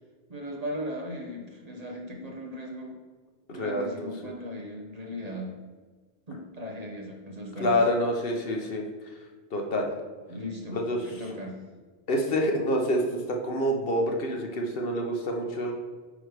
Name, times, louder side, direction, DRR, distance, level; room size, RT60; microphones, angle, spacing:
voice 1, 0.3-3.0 3.5-5.6 6.3-7.7 10.3-11.6, equal, 40° right, 0 dB, 0.9 m, -37 dB
voice 2, 3.5-4.1 7.6-8.8 9.5-9.9 10.7-11.0 12.1-13.0 13.3-15.7, equal, 60° left, 1 dB, 1.0 m, -27 dB
8.6 x 3.3 x 4.8 m, 1.4 s
omnidirectional pair, 1.1 m